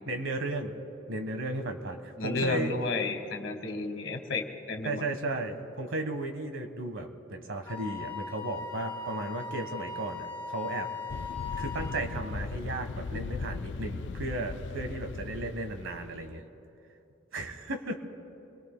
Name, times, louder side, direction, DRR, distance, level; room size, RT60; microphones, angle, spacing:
voice 1, 0.1-0.7 1.1-2.7 4.8-10.9 11.6-16.4 17.3-18.0, right 2 dB, 85° right, 6 dB, 1.4 m, -35 dB
voice 2, 2.2-5.1, left 3 dB, 80° left, 5 dB, 1.5 m, -32 dB
Wind instrument woodwind instrument, 7.7-12.1, left 5 dB, 10° left, 4.2 m, -39 dB
sound 1, 11.1-16.4, left 4 dB, 60° left, 0.4 m, -38 dB
28.0 x 21.5 x 2.2 m, 2.8 s
head